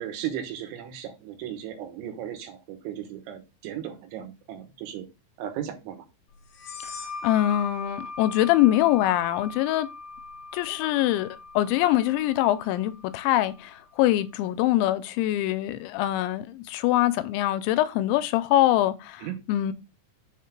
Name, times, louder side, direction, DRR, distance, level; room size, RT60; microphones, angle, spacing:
voice 1, 0.0-5.1 5.4-6.1 19.2-19.4, right 10 dB, 80° right, 3.5 m, -36 dB
sound 1, 6.5-13.8, left 3 dB, 65° left, 2.6 m, -40 dB
voice 2, 7.2-9.9 10.5-11.3 11.6-19.7, left 14 dB, 85° left, 2.9 m, -24 dB
7.1 x 3.7 x 5.8 m
omnidirectional pair, 5.3 m